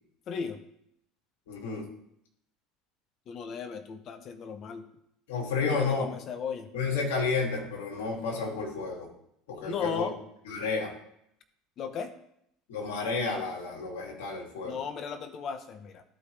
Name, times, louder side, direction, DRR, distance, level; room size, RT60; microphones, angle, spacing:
voice 1, 0.3-0.6 3.3-4.9 5.6-6.7 9.6-10.1 11.8-12.1 14.6-16.0, left 6 dB, 50° left, 9 dB, 0.7 m, -35 dB
voice 2, 1.5-1.8 5.3-6.1 6.7-9.1 9.5-10.1 10.4-10.9 12.7-14.8, left 4 dB, 75° left, -1 dB, 2.4 m, -31 dB
14.0 x 4.9 x 3.3 m, 0.74 s
hypercardioid pair, 80°, 0 cm